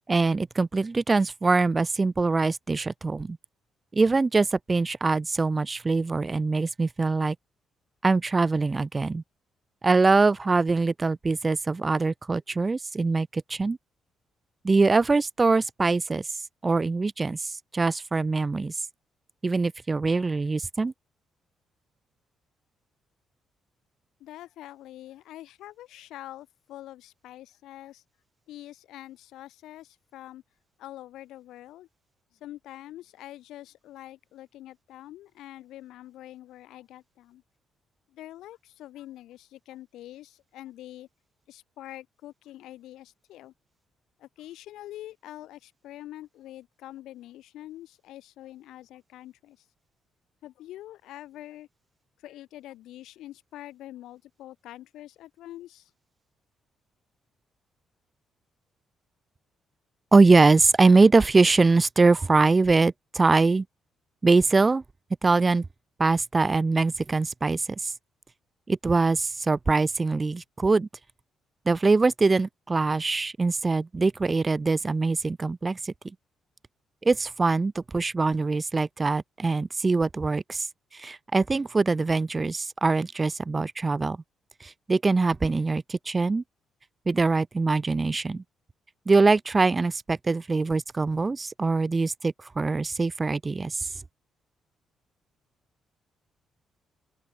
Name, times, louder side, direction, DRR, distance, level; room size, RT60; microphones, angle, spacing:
voice 1, 0.1-3.4 3.9-7.3 8.0-9.2 9.8-13.8 14.6-16.3 16.6-18.7 19.4-20.9 60.1-63.6 64.2-64.8 65.2-65.6 66.0-67.9 68.7-70.9 71.7-75.9 77.0-80.7 80.9-84.2 84.6-86.4 87.1-88.4 89.1-93.9, right 3 dB, 25° right, 1.3 m, -23 dB
voice 2, 24.2-28.0 28.5-30.4 30.8-31.9 32.4-37.4 38.1-41.1 41.5-43.5 44.2-49.7 50.4-51.7 52.2-55.9, left 14 dB, 85° left, 3.9 m, -45 dB
open air
cardioid pair, 90°, 0 cm